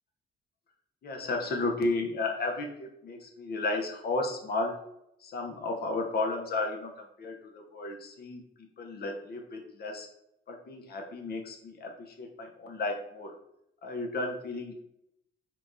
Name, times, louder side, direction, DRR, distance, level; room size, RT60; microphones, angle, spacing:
voice 1, 1.0-4.7 5.2-8.4 8.8-10.1 10.5-13.3 13.8-14.7, left 2 dB, 50° left, 3 dB, 0.7 m, -33 dB
4.4 x 2.3 x 2.6 m, 0.80 s
cardioid pair, 90°, 20 cm